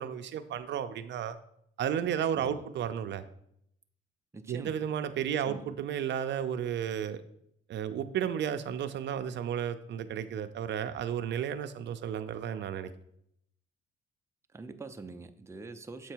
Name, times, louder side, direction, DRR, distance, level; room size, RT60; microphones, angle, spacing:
voice 1, 0.0-1.4 1.8-3.2 4.5-7.2 7.7-12.9, right 9 dB, 65° right, 10 dB, 0.5 m, -33 dB
voice 2, 4.3-4.8 5.5-5.7 14.5-16.1, right 3 dB, 15° right, 7 dB, 0.5 m, -44 dB
7.4 x 4.5 x 4.5 m, 0.72 s
cardioid pair, 90°, 20 cm